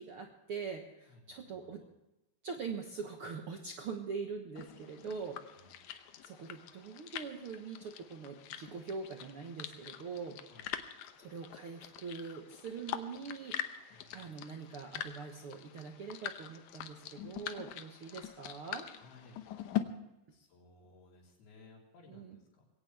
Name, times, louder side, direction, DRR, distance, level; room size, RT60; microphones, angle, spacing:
voice 1, 0.0-1.8 2.4-5.4 5.8-6.0 6.2-10.4 11.2-18.9 22.1-22.4, right 5 dB, 70° right, 3 dB, 1.3 m, -43 dB
voice 2, 1.1-1.9 5.5-5.8 10.5-10.8 13.9-14.4 18.1-18.5 18.9-19.5 20.3-22.7, left 3 dB, 90° left, -1 dB, 5.7 m, -60 dB
sound 1, 4.6-19.8, left 11 dB, 70° left, 1.9 m, -44 dB
21.0 x 17.5 x 3.4 m, 0.92 s
omnidirectional pair, 4.3 m